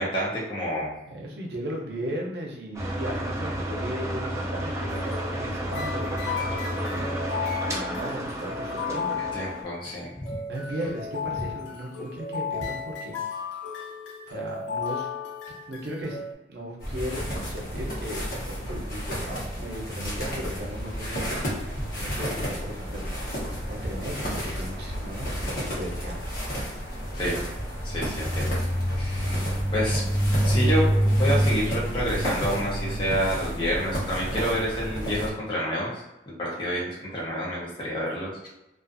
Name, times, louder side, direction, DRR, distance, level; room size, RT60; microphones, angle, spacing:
voice 1, 0.0-0.9 9.2-10.4 27.1-27.4 27.8-28.6 28.9-29.5 29.7-30.0 30.4-36.0 36.4-38.5, equal, 25° left, -5 dB, 0.6 m, -29 dB
voice 2, 1.1-9.2 10.5-13.1 14.3-15.1 15.5-16.2 16.5-21.5 21.9-23.1 23.7-26.2, equal, 65° right, -1 dB, 0.6 m, -36 dB
sound 1, 2.7-9.6, right 1 dB, 15° right, 0.3 m, -31 dB
sound 2, 4.9-16.3, left 6 dB, 90° left, 0.5 m, -34 dB
sound 3, 16.8-35.3, equal, 55° left, 0.9 m, -28 dB
2.4 x 2.4 x 2.5 m, 0.95 s
head